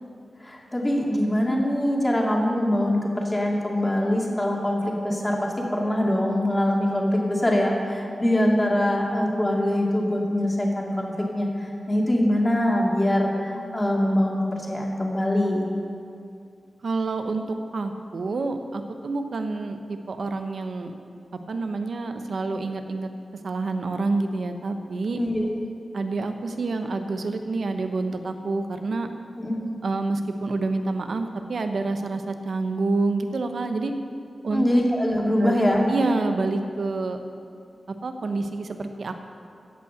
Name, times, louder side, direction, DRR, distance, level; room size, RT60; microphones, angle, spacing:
voice 1, 0.4-15.7 25.2-25.5 29.4-29.6 34.5-35.8, left 1 dB, 20° left, -2 dB, 2.2 m, -23 dB
voice 2, 16.8-20.9 21.3-23.1 23.4-25.2 25.9-29.1 29.8-33.9 34.4-34.7 35.4-35.6 35.9-37.2 38.0-39.1, right 3 dB, 70° right, 6 dB, 0.9 m, -28 dB
15.0 x 5.7 x 7.8 m, 2.4 s
wide cardioid pair, 85°, 0 cm